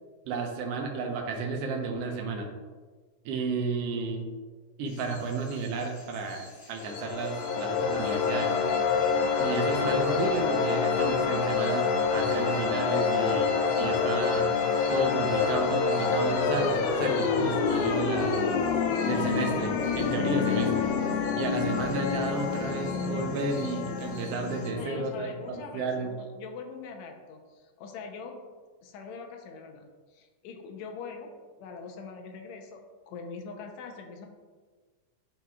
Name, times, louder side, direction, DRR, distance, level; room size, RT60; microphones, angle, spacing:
voice 1, 0.3-2.5 3.2-4.3 4.8-8.5 9.4-14.5 14.9-18.4 19.1-20.9 21.4-26.1, right 3 dB, 75° right, 2 dB, 1.5 m, -32 dB
sound 1, 4.9-24.7, left 2 dB, 55° left, 2.1 m, -51 dB
sound 2, 6.8-25.5, left 5 dB, 90° left, 1.5 m, -27 dB
voice 2, 24.7-28.4 28.8-31.3 31.6-32.8 33.1-34.3, left 5 dB, 70° left, 3 dB, 1.8 m, -43 dB
10.5 x 4.3 x 2.3 m, 1.4 s
omnidirectional pair, 3.7 m